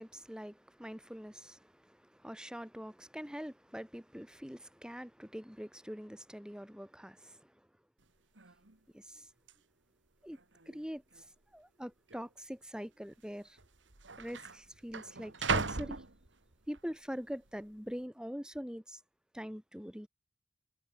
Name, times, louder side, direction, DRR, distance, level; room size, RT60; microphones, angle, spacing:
voice 1, 0.0-7.7 8.9-9.3 10.2-10.4 10.7-11.3 11.5-13.6 14.2-16.0 16.7-19.0 19.3-20.1, equal, 5° right, 7.9 m, -44 dB
sound 1, 8.0-8.1 8.4-8.8 9.5-9.6 10.3-10.8 11.1-11.2 12.1-12.3 13.3-13.4 13.6-16.8 17.3-17.7, right 4 dB, 85° right, 2.5 m, -38 dB
head